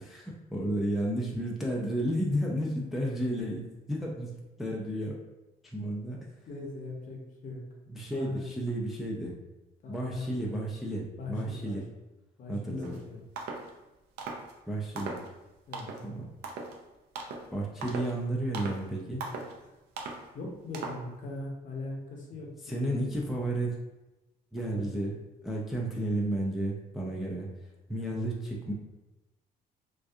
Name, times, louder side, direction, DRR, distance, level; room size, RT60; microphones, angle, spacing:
voice 1, 0.0-4.3 4.6-5.2 5.7-6.2 7.9-9.3 9.9-11.8 12.5-13.0 14.7-15.2 16.0-16.2 17.5-19.2 22.7-23.9 24.5-25.2 25.4-27.5 27.9-28.7, right 1 dB, ahead, -3 dB, 0.3 m, -32 dB
voice 2, 6.5-7.6 8.1-8.5 9.8-10.6 11.2-11.8 12.4-13.2 15.7-15.9 20.3-23.0 24.6-24.8 27.9-28.1, left 2 dB, 50° left, -1 dB, 0.7 m, -40 dB
sound 1, 12.8-13.0 13.4-13.7 14.2-14.5 15.0-15.3 15.7-16.1 16.4-16.8 17.1-17.5 17.8-18.2 18.5-18.8 19.2-19.5 20.0-20.2 20.7-21.1, right 4 dB, 75° right, 0.5 m, -38 dB
2.6 x 2.3 x 2.3 m, 1.0 s
cardioid pair, 110°, 17 cm